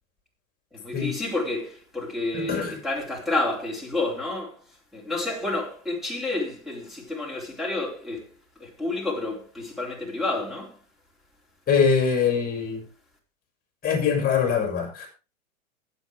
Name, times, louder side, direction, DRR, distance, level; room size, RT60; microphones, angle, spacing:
voice 1, 0.7-4.6 4.9-8.3 8.6-10.8, left 2 dB, ahead, 3.8 m, -30 dB
voice 2, 2.3-2.7 11.7-12.8 13.8-15.1, left 6 dB, 20° left, 5.7 m, -23 dB
19.5 x 7.9 x 3.4 m
hypercardioid pair, 105°, 42 cm